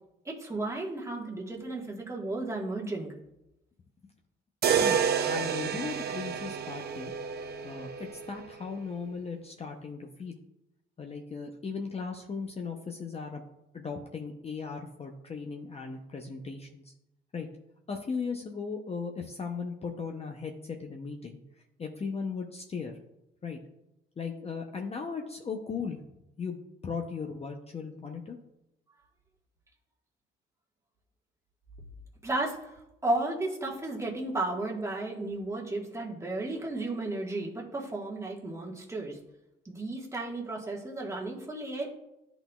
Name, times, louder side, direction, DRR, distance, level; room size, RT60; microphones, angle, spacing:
voice 1, 0.2-3.1 32.2-32.7 33.0-39.2 39.6-41.9, right 2 dB, 15° right, -2 dB, 1.4 m, -33 dB
sound 1, 4.6-8.7, right 7 dB, 55° right, 0.5 m, -30 dB
voice 2, 5.2-7.1 7.6-7.9 8.3-10.4 11.0-13.4 13.7-16.9 17.3-17.5 17.9-21.4 21.8-22.9 23.4-23.6 24.2-26.0 26.4-28.4, left 5 dB, 30° left, 3 dB, 0.6 m, -37 dB
10.5 x 3.9 x 2.3 m, 0.88 s
cardioid pair, 90°, 20 cm